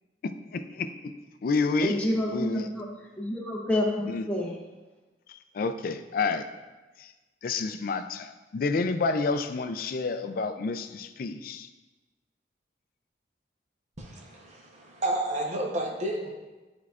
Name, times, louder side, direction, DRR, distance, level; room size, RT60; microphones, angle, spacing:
voice 1, 0.2-1.1 1.4-2.7 4.1-4.2 5.3-6.4 7.0-7.1 7.4-11.7, left 4 dB, 55° left, 9 dB, 0.4 m, -29 dB
voice 2, 1.8-2.9 3.2-4.6, left 1 dB, 5° left, -2 dB, 0.6 m, -28 dB
voice 3, 14.0-16.3, right 1 dB, 40° right, 0 dB, 0.9 m, -31 dB
8.4 x 4.6 x 2.4 m, 1.2 s
head